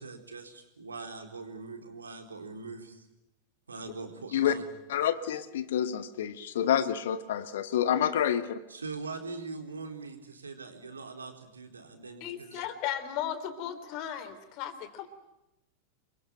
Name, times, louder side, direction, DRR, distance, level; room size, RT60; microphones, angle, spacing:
voice 1, 0.0-3.1 3.7-4.6 8.7-12.6, right 4 dB, 75° right, 5 dB, 3.9 m, -42 dB
voice 2, 4.9-8.6, left 10 dB, 60° left, 12 dB, 1.5 m, -28 dB
voice 3, 12.2-15.1, left 10 dB, 40° left, 12 dB, 3.4 m, -36 dB
28.5 x 23.0 x 9.1 m, 0.92 s
figure-of-eight pair, 90°, 0 cm